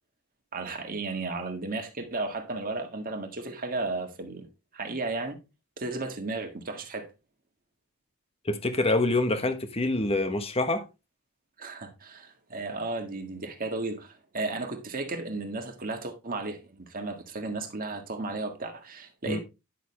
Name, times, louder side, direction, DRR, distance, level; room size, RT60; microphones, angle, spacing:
voice 1, 0.5-4.4 4.7-5.4 5.8-7.1 11.6-19.4, right 3 dB, 40° right, 1.7 m, -34 dB
voice 2, 8.4-10.8 19.3-19.4, left 2 dB, 25° left, 1.2 m, -26 dB
10.0 x 6.6 x 3.2 m
head